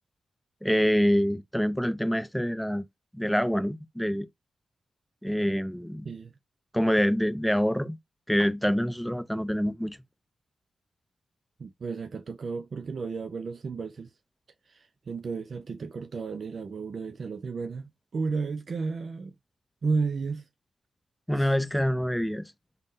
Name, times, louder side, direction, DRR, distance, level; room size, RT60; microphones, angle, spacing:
voice 1, 0.6-2.8 3.1-4.3 5.2-6.1 6.7-8.0 8.3-10.0 21.3-22.5, equal, 5° left, 0.5 m, -26 dB
voice 2, 11.6-14.1 14.7-19.3 19.8-20.4 21.4-21.5, right 4 dB, 65° right, 0.3 m, -33 dB
3.5 x 2.1 x 2.6 m
supercardioid pair, 45°, 0 cm